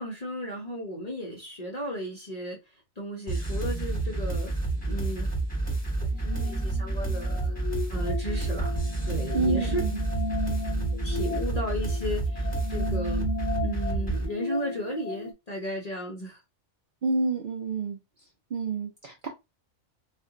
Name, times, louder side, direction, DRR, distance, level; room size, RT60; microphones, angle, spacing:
voice 1, 0.0-2.6 3.0-4.5 4.9-5.3 6.0-8.7 9.0-9.8 11.0-13.3 13.6-16.4, equal, 40° left, 0.6 m, -35 dB
sound 1, 3.3-14.2, right 2 dB, 10° left, 0.9 m, -29 dB
sound 2, 6.1-15.3, left 3 dB, 70° left, 0.9 m, -36 dB
voice 2, 9.3-10.0 17.0-18.0 18.5-19.3, right 3 dB, 55° right, 0.6 m, -28 dB
2.4 x 2.2 x 3.7 m
omnidirectional pair, 1.4 m